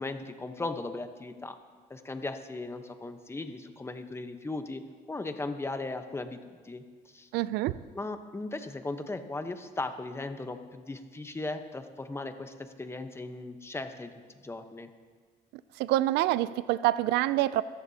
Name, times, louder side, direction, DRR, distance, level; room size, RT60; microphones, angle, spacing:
voice 1, 0.0-1.6 1.9-4.8 5.1-6.4 6.6-6.8 7.1-7.3 7.9-14.1 14.4-14.9, left 2 dB, 15° left, 8 dB, 1.0 m, -37 dB
voice 2, 7.3-7.7 15.8-17.6, right 15 dB, 85° right, 17 dB, 0.4 m, -26 dB
23.0 x 14.0 x 2.8 m, 1.6 s
cardioid pair, 110°, 17 cm